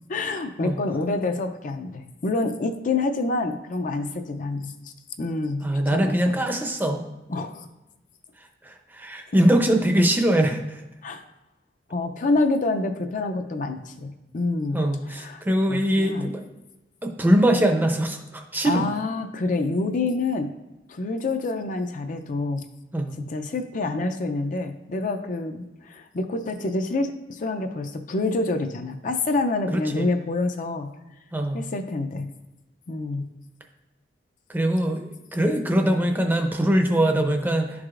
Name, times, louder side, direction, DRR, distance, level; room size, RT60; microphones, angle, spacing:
voice 1, 0.1-6.4 7.3-7.7 11.0-11.2 11.9-15.4 15.7-16.3 18.6-20.5 20.9-22.6 23.2-30.9 31.5-32.3 32.9-33.3, left 3 dB, 45° left, 7 dB, 0.5 m, -27 dB
voice 2, 5.6-7.0 8.6-10.8 14.7-16.4 17.0-18.9 22.9-23.2 29.7-30.1 31.3-31.7 34.5-37.9, right 1 dB, 10° right, 4 dB, 0.6 m, -22 dB
11.0 x 4.7 x 2.5 m, 1.0 s
head